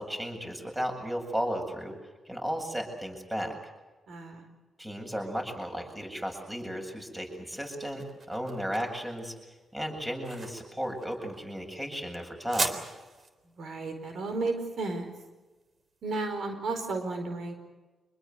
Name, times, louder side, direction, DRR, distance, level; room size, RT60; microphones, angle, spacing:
voice 1, 0.0-1.9 2.2-3.6 4.8-9.3 9.7-12.7, equal, 10° right, 3 dB, 7.8 m, -34 dB
voice 2, 4.1-4.5 13.6-15.0 16.0-17.5, right 3 dB, 70° right, 6 dB, 4.8 m, -33 dB
sound 1, 7.0-16.0, right 3 dB, 45° right, 3.6 m, -40 dB
26.5 x 21.0 x 8.1 m, 1.2 s
cardioid pair, 85°, 0 cm